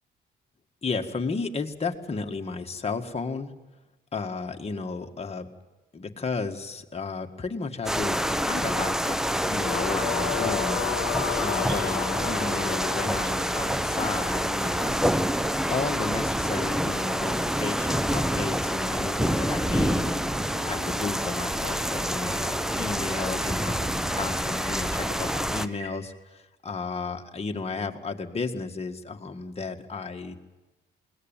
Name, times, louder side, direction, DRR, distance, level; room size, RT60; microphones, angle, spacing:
voice 1, 0.8-3.5 4.1-5.5 5.9-10.8 11.4-14.9 15.7-20.2 20.6-30.3, left 4 dB, 30° left, 4 dB, 1.9 m, -33 dB
sound 1, 7.9-25.7, equal, ahead, 0.8 m, -27 dB
sound 2, 9.6-14.8, left 13 dB, 80° left, 0.9 m, -33 dB
sound 3, 11.3-25.9, right 2 dB, 80° right, 3.8 m, -48 dB
21.5 x 18.5 x 9.1 m, 1.1 s
cardioid pair, 90°, 20 cm